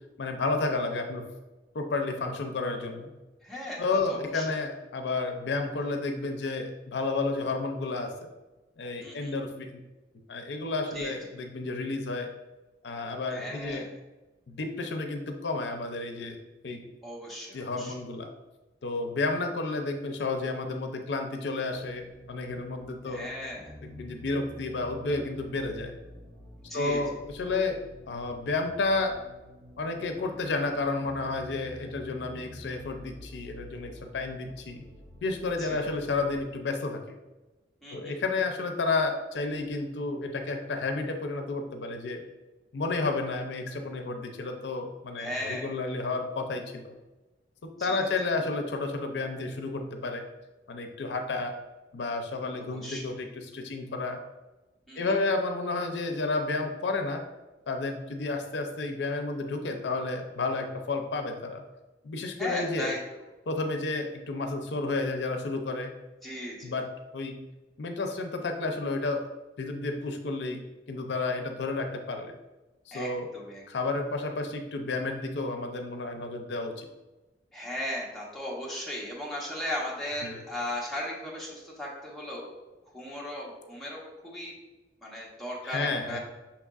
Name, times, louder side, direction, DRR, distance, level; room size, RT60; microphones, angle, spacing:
voice 1, 0.2-1.2 1.7-3.1 3.8-8.3 8.8-9.8 10.3-12.3 12.8-13.9 14.5-16.4 16.6-16.9 17.5-18.3 18.8-23.2 23.8-25.9 26.7-27.8 28.1-29.1 29.8-34.8 35.2-37.2 37.9-42.2 42.7-46.9 47.8-50.2 50.7-51.5 51.9-54.2 55.0-57.2 57.7-61.6 62.0-62.9 63.5-65.9 66.6-66.9 67.1-67.4 67.8-69.2 69.6-70.6 70.9-72.3 72.9-73.3 73.7-76.9 80.2-80.3 85.6-86.2, left 3 dB, 75° left, 5 dB, 0.5 m, -31 dB
voice 2, 3.4-3.8 4.1-4.5 9.0-9.3 10.9-11.1 13.3-13.9 17.0-17.9 23.1-23.7 26.7-27.0 35.6-35.9 37.8-38.2 45.2-45.7 47.8-48.1 52.6-53.0 54.9-55.2 62.4-63.0 66.2-66.7 72.9-73.6 77.5-82.5 82.9-84.5 85.0-86.2, left 1 dB, ahead, -5 dB, 1.0 m, -37 dB
sound 1, 21.6-36.4, left 1 dB, 40° right, 1.0 m, -49 dB
5.8 x 3.5 x 2.4 m, 1.1 s
head